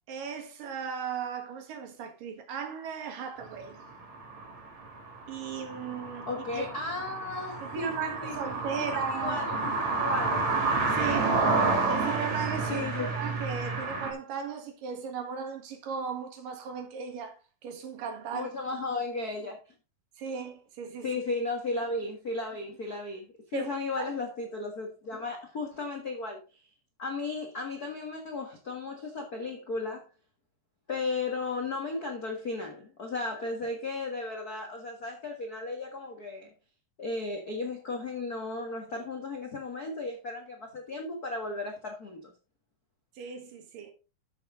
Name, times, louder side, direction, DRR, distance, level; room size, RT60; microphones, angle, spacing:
voice 1, 0.1-3.8 5.3-6.6 7.6-9.4 10.9-11.4 11.9-18.5 20.2-21.1 23.5-24.1 43.1-43.9, right 6 dB, 65° right, 3.2 m, -37 dB
sound 1, 3.5-14.1, right 3 dB, 50° right, 3.8 m, -30 dB
voice 2, 6.3-8.3 8.8-10.5 12.7-13.1 18.3-19.6 21.0-26.4 27.0-30.0 30.9-36.5 37.0-42.3, left 3 dB, 75° left, 0.8 m, -35 dB
12.5 x 6.9 x 3.7 m
omnidirectional pair, 4.5 m